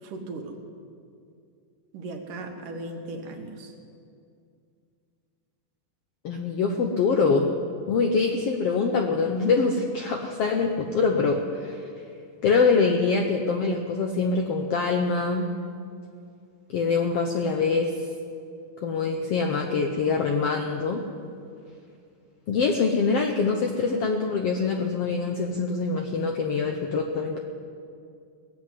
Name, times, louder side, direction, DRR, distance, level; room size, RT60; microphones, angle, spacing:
voice 1, 0.0-0.6 1.9-3.7, right 2 dB, 75° right, 3 dB, 3.0 m, -37 dB
voice 2, 6.2-7.5 7.9-11.8 12.4-15.5 16.7-17.9 18.8-21.0 22.5-27.4, left 4 dB, 75° left, 3 dB, 1.4 m, -24 dB
18.0 x 7.7 x 9.6 m, 2.4 s
omnidirectional pair, 3.8 m